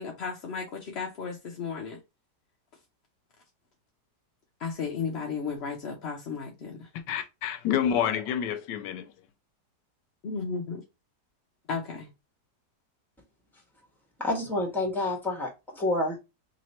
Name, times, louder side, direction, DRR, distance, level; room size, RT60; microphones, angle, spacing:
voice 1, 0.0-2.0 4.6-6.9 10.2-10.8 11.7-12.1, left 5 dB, 55° left, 0.7 m, -34 dB
voice 2, 7.1-9.1, left 9 dB, 80° left, 1.2 m, -28 dB
voice 3, 14.2-16.2, left 2 dB, ahead, 1.3 m, -28 dB
3.1 x 3.0 x 4.2 m
omnidirectional pair, 1.9 m